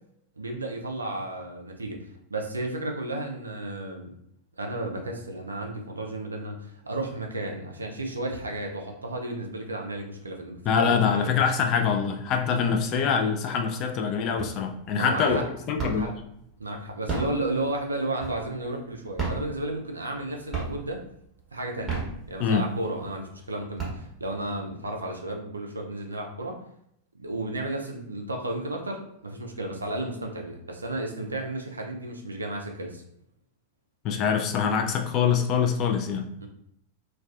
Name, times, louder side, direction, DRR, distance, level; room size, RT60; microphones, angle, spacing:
voice 1, 0.4-2.0 2.3-4.1 4.6-11.3 14.9-15.4 15.8-16.1 16.6-21.0 21.5-22.0 22.3-26.5 27.1-33.0 36.4-36.5, right 2 dB, 75° right, 1 dB, 0.4 m, -33 dB
voice 2, 10.7-16.1 22.4-22.7 34.0-36.3, left 6 dB, 35° left, 3 dB, 0.3 m, -24 dB
sound 1, 14.4-14.9 15.2-16.2 16.9-18.7 19.1-20.2 20.5-21.1 21.7-22.7 23.2-23.3 23.6-24.5, right 4 dB, 15° right, 0.9 m, -33 dB
2.3 x 2.2 x 2.4 m, 0.73 s
figure-of-eight pair, 90°, 0 cm